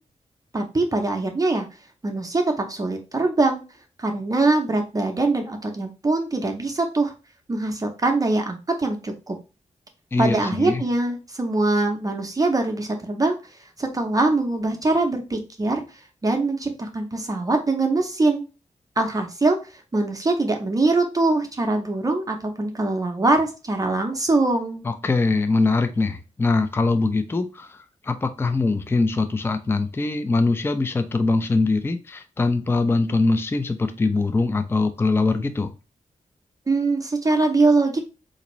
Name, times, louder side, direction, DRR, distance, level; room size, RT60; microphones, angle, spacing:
voice 1, 0.5-1.7 2.0-3.6 4.0-7.1 7.5-9.4 10.2-13.4 13.8-15.8 16.2-18.4 19.0-24.8 36.7-38.0, right 2 dB, 25° right, 0.6 m, -23 dB
voice 2, 10.1-10.8 24.8-35.7, left 3 dB, 15° left, 0.3 m, -22 dB
3.9 x 2.6 x 3.0 m
wide cardioid pair, 115°, 13 cm